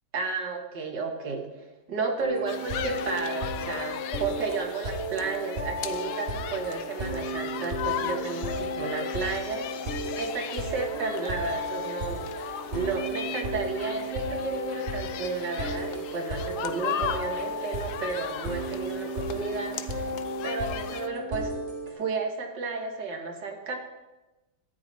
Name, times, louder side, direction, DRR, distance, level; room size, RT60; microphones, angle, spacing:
voice 1, 0.1-1.5 1.9-9.6 10.2-20.1 20.4-21.5 21.9-23.7, right 4 dB, 85° right, 2 dB, 2.1 m, -32 dB
sound 1, 2.2-21.9, equal, 35° right, 1.8 m, -34 dB
sound 2, 2.5-21.1, left 10 dB, 80° left, 1.2 m, -37 dB
13.0 x 10.0 x 4.1 m, 1.1 s
omnidirectional pair, 1.8 m